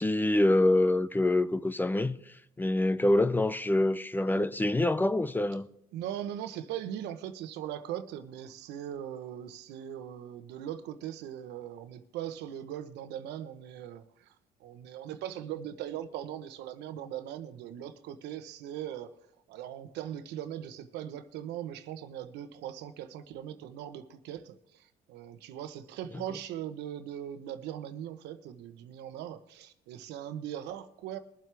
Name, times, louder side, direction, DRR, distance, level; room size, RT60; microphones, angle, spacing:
voice 1, 0.0-2.2 2.6-5.7, left 1 dB, 10° left, 0.6 m, -25 dB
voice 2, 5.9-19.1 19.5-31.2, right 10 dB, 85° right, 1.0 m, -40 dB
22.5 x 7.7 x 3.5 m
cardioid pair, 110°, 17 cm